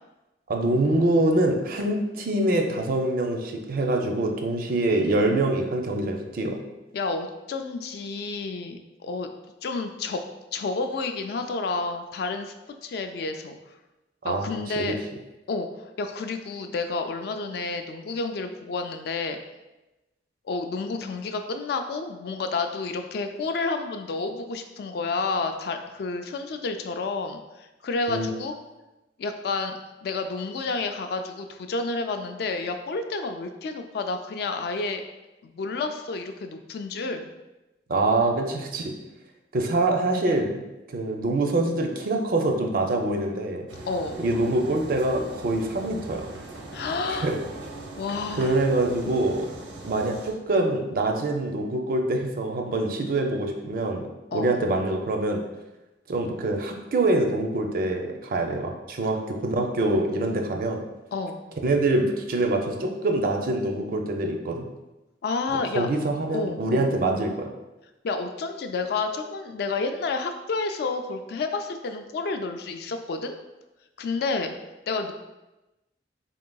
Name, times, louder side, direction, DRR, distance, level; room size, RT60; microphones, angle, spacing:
voice 1, 0.5-6.6 14.2-14.9 28.1-28.3 37.9-38.9 39.5-40.5 40.9-43.7 44.2-46.3 47.1-47.4 48.4-49.5 49.8-54.1 54.3-55.4 56.1-60.8 61.6-64.7 65.8-67.5, right 2 dB, 50° right, 3 dB, 0.4 m, -25 dB
voice 2, 6.9-9.3 9.6-10.2 10.5-12.5 12.8-13.6 14.2-15.0 15.5-15.7 16.0-19.4 20.5-28.5 29.2-29.7 30.0-35.0 35.4-37.3 43.9-44.2 46.7-47.3 48.0-48.6 54.3-54.6 61.1-61.4 65.2-65.9 66.3-66.9 68.0-73.3 74.0-74.5 74.9-75.1, left 3 dB, 60° left, 6 dB, 0.3 m, -30 dB
sound 1, 43.7-50.3, right 2 dB, 90° right, 0.7 m, -40 dB
3.8 x 3.7 x 2.2 m, 1.0 s
head